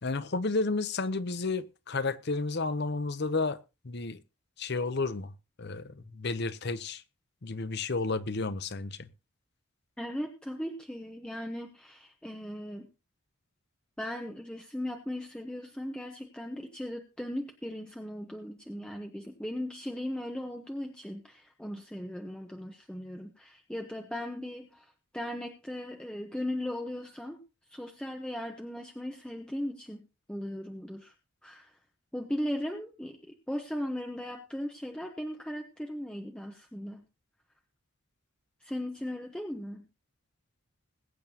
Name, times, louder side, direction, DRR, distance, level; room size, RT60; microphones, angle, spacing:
voice 1, 0.0-3.6 3.8-4.2 4.6-5.3 5.6-7.0 7.4-9.1, left 3 dB, 55° left, 0.8 m, -32 dB
voice 2, 10.0-12.9 14.0-24.9 25.1-27.4 27.7-30.0 30.3-31.1 31.4-31.7 32.1-33.2 33.5-37.0 38.6-39.8, left 1 dB, 5° left, 1.0 m, -37 dB
21.0 x 8.9 x 2.9 m
head